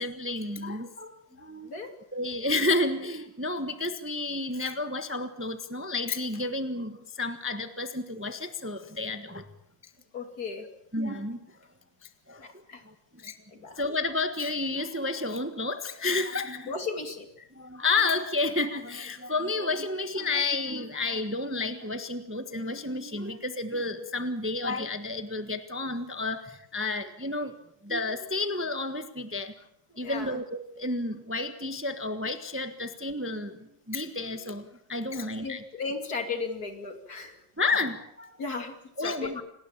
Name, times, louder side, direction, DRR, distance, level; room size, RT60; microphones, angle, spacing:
voice 1, 0.0-1.7 2.1-9.4 10.9-11.5 12.3-12.5 12.8-13.3 13.7-16.7 17.5-27.5 27.8-29.5 30.0-35.6 37.6-38.4 39.0-39.4, left 2 dB, 10° right, 9 dB, 1.2 m, -31 dB
voice 2, 10.1-10.7 12.4-12.8 13.5-13.8 16.6-17.3 30.0-30.4 35.1-37.4 38.4-39.4, left 4 dB, 55° left, 6 dB, 3.1 m, -36 dB
28.0 x 19.5 x 7.4 m, 0.73 s
omnidirectional pair, 2.0 m